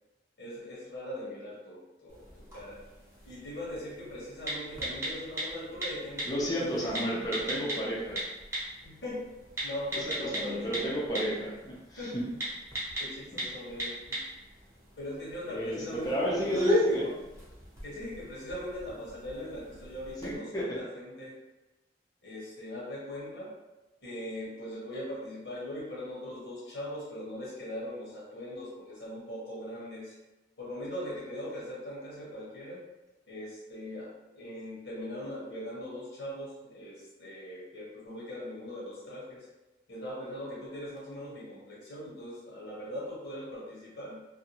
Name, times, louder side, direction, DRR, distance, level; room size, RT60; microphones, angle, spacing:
voice 1, 0.4-2.8 3.2-7.3 8.8-9.3 9.6-11.0 12.0-12.5 13.0-14.2 15.0-17.1 17.8-21.4 22.2-23.6 24.0-30.2 30.6-32.8 33.3-39.5 39.9-44.2, left 1 dB, 75° left, -6 dB, 1.1 m, -40 dB
sound 1, 2.1-20.4, equal, 15° right, 0.8 m, -37 dB
voice 2, 6.3-8.2 9.9-12.2 15.5-17.0 20.2-20.8, equal, 20° left, -7 dB, 0.4 m, -32 dB
2.5 x 2.2 x 2.8 m, 1.0 s
head